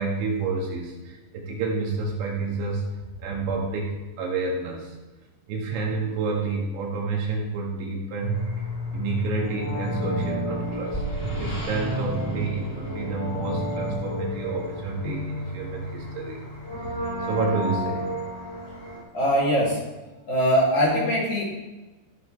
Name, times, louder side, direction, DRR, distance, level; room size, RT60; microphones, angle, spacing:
voice 1, 0.0-2.8 3.2-4.9 5.5-8.5 8.9-16.4 16.8-16.9 17.2-18.1, right 3 dB, 85° right, -2 dB, 4.2 m, -29 dB
sound 1, 8.2-19.0, equal, 15° left, 2.5 m, -31 dB
voice 2, 19.1-19.8 20.3-21.4, equal, 45° left, -5 dB, 3.8 m, -21 dB
17.5 x 6.7 x 3.4 m, 1.1 s
omnidirectional pair, 5.2 m